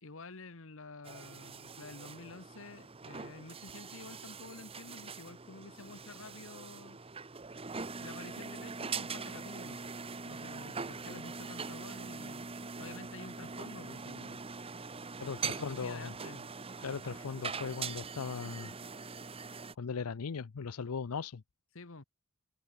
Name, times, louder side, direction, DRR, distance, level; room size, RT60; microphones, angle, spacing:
voice 1, 0.0-7.0 8.0-10.0 10.3-12.5 12.8-14.4 15.4-16.5 21.7-22.0, left 3 dB, 60° left, 1.4 m, -50 dB
sound 1, 1.0-19.7, right 5 dB, 25° right, 1.0 m, -43 dB
voice 2, 15.2-16.1 16.8-18.7 19.8-21.4, left 5 dB, 80° left, 0.6 m, -38 dB
head